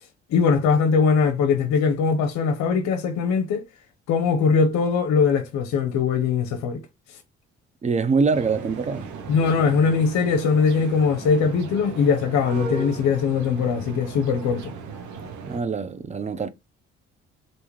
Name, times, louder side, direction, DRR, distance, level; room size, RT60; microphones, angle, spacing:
voice 1, 0.3-3.6 4.1-6.8 9.3-14.7, left 5 dB, 60° left, 0.6 m, -21 dB
voice 2, 7.8-9.1 15.4-16.5, right 4 dB, 20° right, 0.5 m, -24 dB
sound 1, 8.3-15.6, right 4 dB, 65° right, 0.8 m, -36 dB
3.4 x 2.6 x 3.0 m
hypercardioid pair, 50°, 32 cm